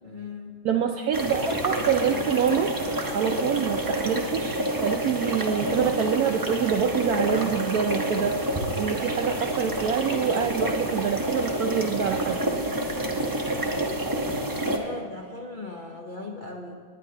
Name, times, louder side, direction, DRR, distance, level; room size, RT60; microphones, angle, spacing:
voice 1, 0.0-0.7 13.0-13.5 14.6-16.7, left 3 dB, 55° left, 0 dB, 0.5 m, -39 dB
voice 2, 0.6-8.4 8.8-12.4, right 8 dB, 75° right, 5 dB, 0.8 m, -26 dB
sound 1, 1.1-14.8, right 1 dB, 25° right, 0.4 m, -28 dB
20.0 x 9.7 x 2.8 m, 2.2 s
omnidirectional pair, 2.1 m